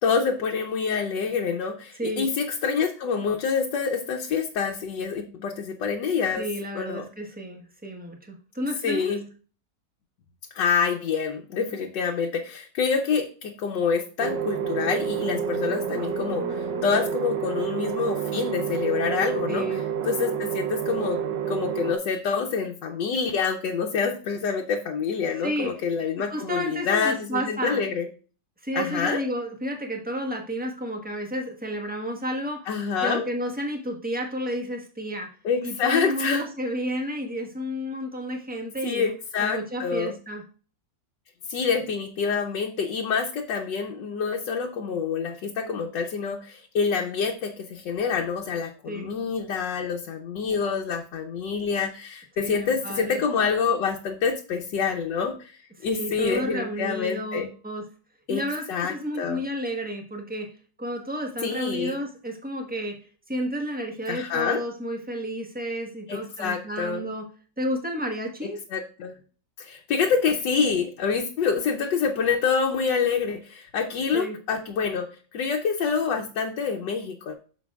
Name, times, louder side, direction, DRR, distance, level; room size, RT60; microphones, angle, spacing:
voice 1, 0.0-6.4 6.7-7.1 8.8-9.2 10.5-19.8 20.1-21.2 21.5-28.1 28.7-29.2 32.7-33.2 35.4-36.5 38.8-40.2 41.5-57.5 58.3-58.4 58.7-59.5 61.4-62.0 64.1-64.6 66.1-67.1 68.7-69.1 69.6-77.3, left 6 dB, 90° left, 1 dB, 1.5 m, -27 dB
voice 2, 6.4-9.2 19.5-19.8 25.4-25.7 26.2-27.8 28.6-32.7 33.0-35.3 35.6-39.1 39.4-40.4 48.9-49.1 52.4-53.2 55.8-57.8 58.3-60.5 60.8-63.0 63.3-67.2 67.6-68.6 74.1-74.4, equal, 5° right, 2 dB, 1.1 m, -31 dB
sound 1, 14.2-22.0, right 7 dB, 85° right, 1.5 m, -29 dB
9.1 x 6.9 x 2.4 m, 0.38 s
omnidirectional pair, 1.9 m